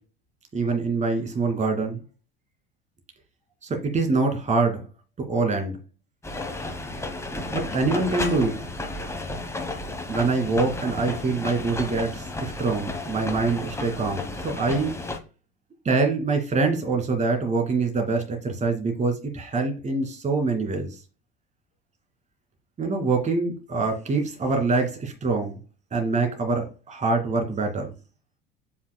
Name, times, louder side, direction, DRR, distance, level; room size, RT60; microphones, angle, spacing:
voice 1, 0.5-2.0 3.6-4.8 5.3-5.8 7.5-8.5 10.1-15.0 15.8-20.9 22.8-25.6 25.9-27.9, right 3 dB, 25° right, 2.5 m, -25 dB
sound 1, 6.2-15.2, left 2 dB, 10° left, 1.2 m, -33 dB
7.8 x 6.9 x 2.2 m
figure-of-eight pair, 70°, 29 cm